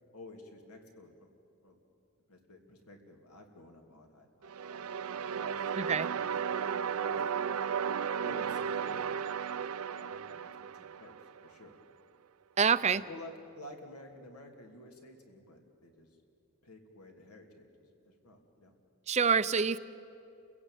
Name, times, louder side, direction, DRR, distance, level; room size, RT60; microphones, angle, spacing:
voice 1, 0.1-1.3 1.6-1.8 2.3-4.9 5.3-7.5 8.2-9.2 9.4-11.8 12.8-16.2 16.6-18.7, left 2 dB, 90° left, 3 dB, 3.0 m, -52 dB
sound 1, 4.4-11.5, right 7 dB, 80° right, 0.6 m, -35 dB
voice 2, 5.8-6.1 12.6-13.0 19.1-19.8, right 6 dB, 30° right, 14 dB, 0.5 m, -26 dB
29.0 x 16.5 x 9.2 m, 2.7 s
head